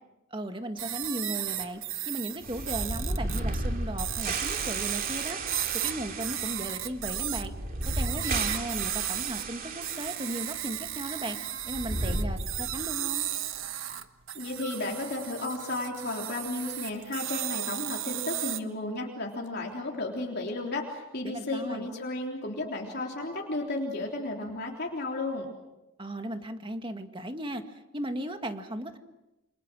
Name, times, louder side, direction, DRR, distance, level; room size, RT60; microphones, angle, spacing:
voice 1, 0.3-5.4 5.8-7.5 7.9-11.4 11.7-13.2 21.2-21.9 26.0-27.6 27.9-29.0, right 1 dB, 25° right, 6 dB, 1.9 m, -36 dB
sound 1, 0.8-3.6 4.0-7.5 7.8-9.4 9.8-18.6, right 12 dB, 70° right, 1.4 m, -35 dB
sound 2, 2.4-10.6 10.9-11.0 11.6-13.0, right 2 dB, 40° right, 2.8 m, -34 dB
voice 2, 14.4-25.5, left 2 dB, 50° left, -1 dB, 3.5 m, -33 dB
29.0 x 27.5 x 6.3 m, 0.97 s
head